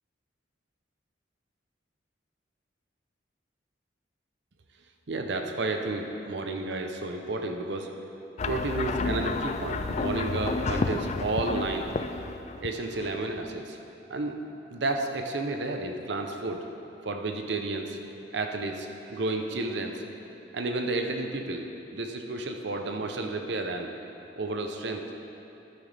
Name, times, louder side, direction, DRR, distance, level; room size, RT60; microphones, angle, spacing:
voice 1, 5.1-7.9 8.4-11.9 12.6-13.8 14.1-14.4 14.7-16.7 17.0-20.0 20.5-21.6 21.9-23.9 24.4-25.1, right 2 dB, 65° right, 4 dB, 0.7 m, -31 dB
sound 1, 8.4-13.6, left 3 dB, 35° left, 0.3 m, -31 dB
11.0 x 9.0 x 3.4 m, 2.8 s
head